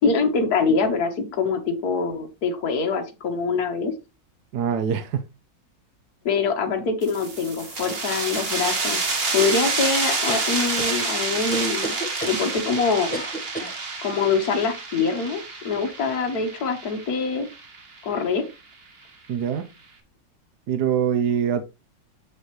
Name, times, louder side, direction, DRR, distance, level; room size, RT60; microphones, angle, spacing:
voice 1, 0.0-3.9 6.2-9.0 9.3-11.9 12.2-13.2 14.0-17.5 18.0-18.4, left 4 dB, 55° left, 1.8 m, -24 dB
voice 2, 4.5-5.3 19.3-19.7 20.7-21.6, right 8 dB, 65° right, 1.3 m, -23 dB
sound 1, 7.0-18.3, right 3 dB, 35° right, 1.4 m, -28 dB
sound 2, 10.3-11.0 11.5-12.4 13.1-13.8, right 1 dB, 5° left, 0.8 m, -32 dB
6.9 x 6.8 x 3.1 m
omnidirectional pair, 2.0 m